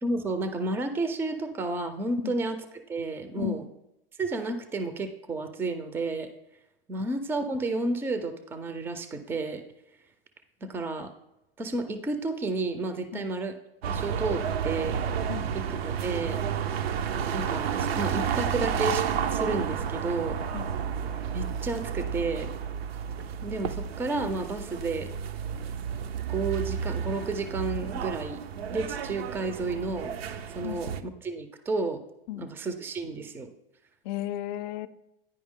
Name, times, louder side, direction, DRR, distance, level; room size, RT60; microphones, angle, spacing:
voice 1, 0.0-3.6 4.2-6.3 6.9-9.6 10.6-11.1 11.6-13.5 13.9-15.0 15.5-16.4 17.3-19.0 19.3-20.4 21.3-22.5 23.4-25.1 26.3-28.4 28.7-30.2 30.5-32.0 32.3-33.5, right 2 dB, 5° right, 9 dB, 0.4 m, -31 dB
sound 1, 13.8-31.0, right 7 dB, 80° right, 0.6 m, -31 dB
voice 2, 34.0-34.9, left 13 dB, 55° left, 14 dB, 0.5 m, -34 dB
9.5 x 4.7 x 3.6 m, 0.88 s
hypercardioid pair, 125°, 30 cm